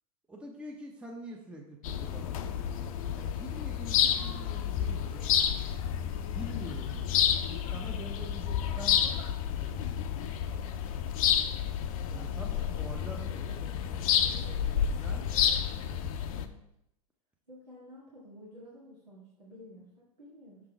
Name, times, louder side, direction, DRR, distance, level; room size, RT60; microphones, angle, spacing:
voice 1, 0.3-5.3 6.3-9.1 9.4-10.3 12.1-13.5 15.0-15.3, equal, 5° right, -1 dB, 0.8 m, -46 dB
sound 1, 1.8-16.4, left 9 dB, 55° left, 0.5 m, -30 dB
voice 2, 12.4-14.2 16.3-16.6 17.5-20.6, equal, 90° right, -6 dB, 1.7 m, -51 dB
6.0 x 3.6 x 4.6 m, 0.82 s
figure-of-eight pair, 95°, 21 cm